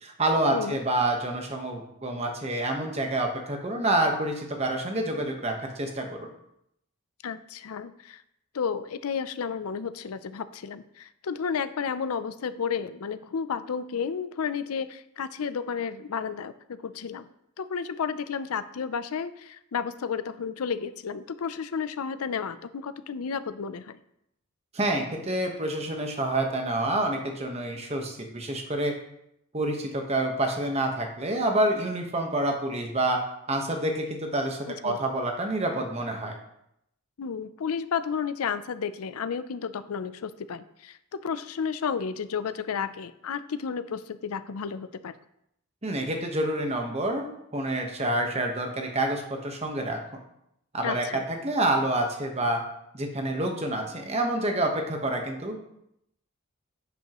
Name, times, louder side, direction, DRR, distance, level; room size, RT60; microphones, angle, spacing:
voice 1, 0.0-6.3 24.7-28.9 29.5-33.2 33.5-36.4 45.8-47.3 47.5-50.0 50.7-52.6 52.9-55.6, right 1 dB, 30° right, 2 dB, 1.1 m, -28 dB
voice 2, 7.2-8.2 8.5-17.3 17.6-24.0 34.7-35.0 37.2-45.1 50.8-51.2, left 6 dB, 85° left, 13 dB, 0.5 m, -32 dB
10.5 x 5.5 x 3.0 m, 0.78 s
head